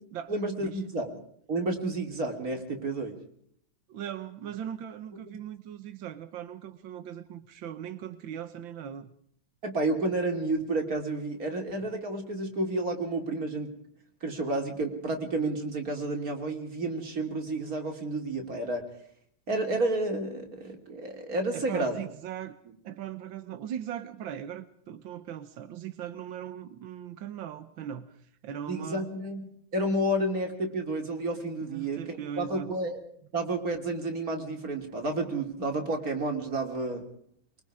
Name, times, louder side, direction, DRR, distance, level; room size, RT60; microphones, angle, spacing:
voice 1, 0.3-1.1 1.5-3.2 9.6-13.7 14.2-18.8 19.5-22.0 28.7-33.0 33.3-37.0, right 2 dB, 50° right, 3 dB, 3.5 m, -31 dB
voice 2, 3.9-9.1 21.5-22.6 22.8-28.1 28.4-29.1 31.7-32.7, right 10 dB, 90° right, 10 dB, 1.8 m, -39 dB
23.5 x 23.0 x 4.9 m, 0.67 s
omnidirectional pair, 2.0 m